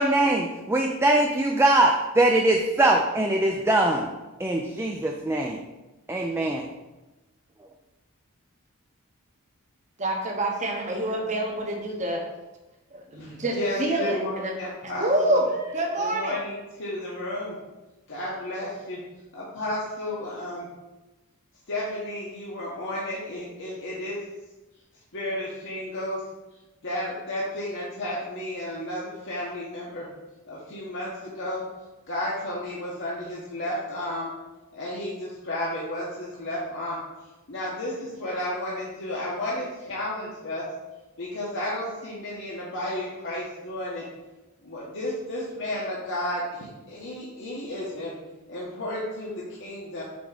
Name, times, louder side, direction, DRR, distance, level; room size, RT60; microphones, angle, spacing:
voice 1, 0.0-4.1 4.4-5.6 6.1-6.6, right 2 dB, 10° right, 1 dB, 0.4 m, -22 dB
voice 2, 10.0-12.2 12.9-14.5 15.0-16.4, right 1 dB, 35° right, 1 dB, 1.0 m, -27 dB
voice 3, 13.1-15.4 16.0-17.5 18.1-19.0 19.3-20.7 21.7-24.2 25.1-26.2 26.8-30.1 30.5-31.6 32.1-34.3 34.7-37.0 37.5-40.6 41.2-44.0 44.6-48.1 48.5-50.0, left 1 dB, 55° left, -6 dB, 1.0 m, -32 dB
5.2 x 3.6 x 5.1 m, 1.1 s
head